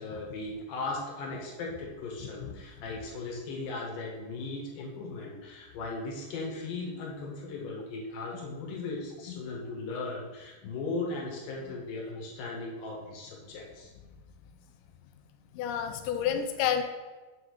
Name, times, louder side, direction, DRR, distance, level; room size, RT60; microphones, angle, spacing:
voice 1, 0.0-13.9, left 3 dB, 70° left, -2 dB, 2.9 m, -37 dB
voice 2, 15.5-16.8, left 9 dB, 85° left, 6 dB, 1.9 m, -29 dB
7.0 x 3.8 x 6.5 m, 1.3 s
omnidirectional pair, 4.2 m